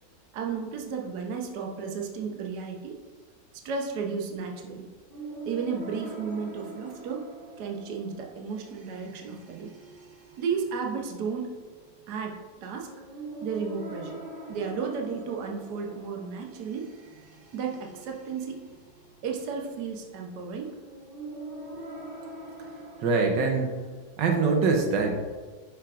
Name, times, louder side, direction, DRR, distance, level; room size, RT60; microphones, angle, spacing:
voice 1, 0.3-3.0 3.6-4.9 5.4-7.3 7.6-9.7 10.4-11.5 12.1-12.9 13.4-14.2 14.5-16.9 17.5-18.6 19.2-20.8, right 5 dB, 70° right, 2 dB, 1.4 m, -33 dB
sound 1, 5.1-23.3, right 1 dB, 40° right, 0.9 m, -45 dB
voice 2, 23.0-23.8 24.2-25.1, right 4 dB, 85° right, 3 dB, 1.5 m, -23 dB
9.6 x 5.8 x 2.5 m, 1.4 s
omnidirectional pair, 1.9 m